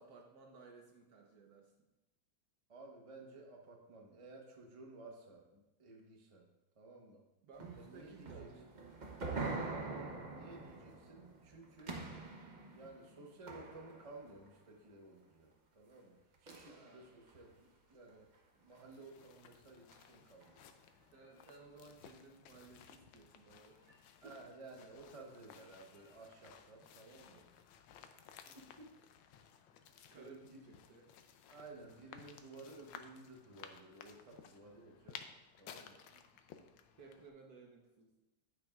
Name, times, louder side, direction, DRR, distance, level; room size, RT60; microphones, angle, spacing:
voice 1, 0.0-1.9 7.4-9.7 16.7-17.2 21.1-24.4 28.4-28.7 30.1-31.1 36.1-36.4 37.0-38.1, right 4 dB, 60° right, 1 dB, 1.2 m, -58 dB
voice 2, 2.7-6.5 6.7-7.2 7.7-8.5 9.9-12.0 12.7-18.3 18.6-20.6 24.2-27.5 28.1-28.9 30.1-30.6 31.5-35.2 35.6-36.1, right 2 dB, 30° right, 1 dB, 0.6 m, -55 dB
sound 1, 7.6-14.6 16.5-17.5 18.1-18.3 18.8-18.9 19.9-20.0 20.4-20.5, right 3 dB, 90° right, 0.4 m, -45 dB
sound 2, 18.7-37.3, left 8 dB, 75° left, 1.3 m, -58 dB
9.9 x 8.5 x 2.4 m, 1.0 s
omnidirectional pair, 2.2 m